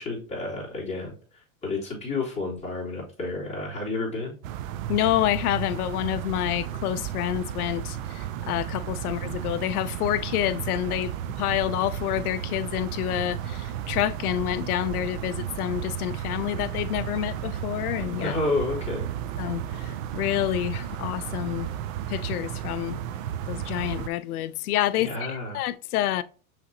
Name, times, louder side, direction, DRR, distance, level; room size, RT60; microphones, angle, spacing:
voice 1, 0.0-4.4 18.2-19.1 25.0-25.6, left 3 dB, 15° left, 2.5 m, -30 dB
sound 1, 4.4-24.1, right 10 dB, 65° right, 0.6 m, -33 dB
voice 2, 4.9-18.3 19.4-21.7 22.1-23.0 23.5-26.2, left 13 dB, 85° left, 0.5 m, -28 dB
5.7 x 3.3 x 2.7 m
hypercardioid pair, 115°, 43 cm